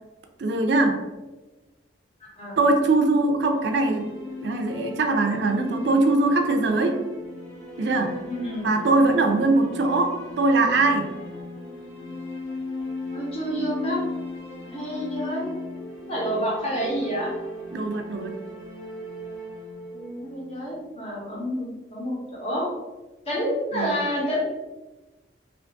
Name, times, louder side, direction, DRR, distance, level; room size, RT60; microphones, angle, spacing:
voice 1, 0.4-1.0 2.6-4.1 4.4-7.0 7.8-8.2 8.6-11.1 17.7-18.3 23.7-24.0, right 2 dB, 65° right, 5 dB, 0.4 m, -21 dB
voice 2, 2.2-2.6 8.2-8.6 13.1-14.0 14.6-15.5 16.1-17.3 19.9-22.7 23.3-24.4, equal, 35° left, -4 dB, 1.0 m, -29 dB
sound 1, 3.3-21.3, left 2 dB, 5° left, 0.9 m, -37 dB
2.6 x 2.5 x 3.4 m, 1.1 s
head